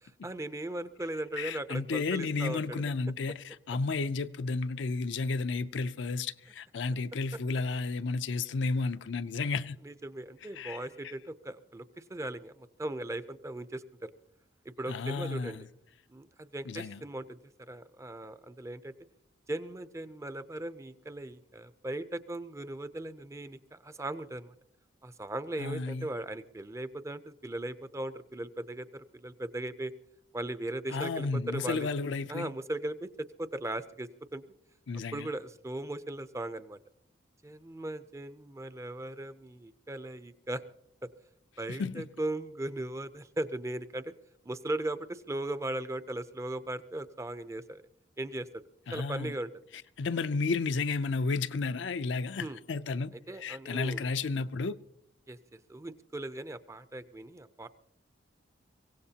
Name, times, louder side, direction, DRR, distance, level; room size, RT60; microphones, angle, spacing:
voice 1, 0.0-2.8 9.8-14.1 14.6-15.6 16.1-18.9 19.5-24.5 25.0-29.9 30.3-31.9 32.3-34.4 35.1-36.8 37.4-40.6 41.0-41.1 41.6-44.1 44.4-47.8 48.2-48.6 48.9-49.5 52.4-52.6 53.3-54.1 55.3-55.4 55.7-57.7, right 1 dB, 15° right, 0.5 m, -38 dB
voice 2, 1.4-9.8 10.6-10.8 14.9-15.7 16.7-17.0 25.6-26.1 30.9-32.5 34.9-35.3 41.7-42.1 48.9-49.3 50.0-54.8, left 4 dB, 70° left, 0.5 m, -32 dB
23.5 x 17.0 x 2.8 m
head